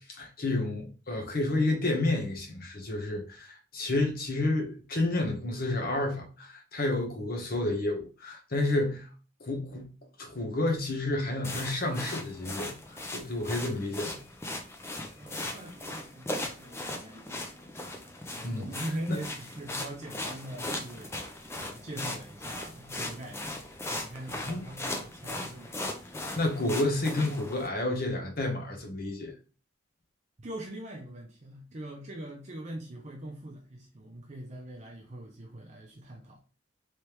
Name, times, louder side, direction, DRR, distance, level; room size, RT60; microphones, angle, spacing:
voice 1, 0.1-9.1 9.4-9.9 10.2-14.2 18.4-18.7 19.1-19.2 24.5-24.6 26.4-29.3, left 2 dB, 45° left, 0.9 m, -30 dB
sound 1, 11.4-27.7, left 1 dB, 15° left, 0.4 m, -38 dB
voice 2, 15.2-17.7 18.4-21.1 21.6-23.6 23.9-25.7 30.4-36.4, right 1 dB, 35° right, 0.6 m, -42 dB
3.3 x 3.3 x 2.9 m
head